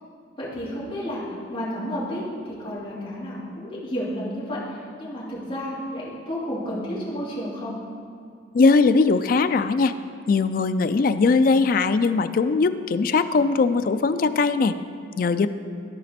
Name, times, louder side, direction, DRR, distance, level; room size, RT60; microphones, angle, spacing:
voice 1, 0.4-1.2 1.5-7.7, equal, 25° left, -9 dB, 2.4 m, -31 dB
voice 2, 8.5-9.9 10.3-14.7 15.2-15.5, left 4 dB, 45° left, 11 dB, 0.3 m, -20 dB
13.5 x 5.1 x 4.3 m, 2.3 s
head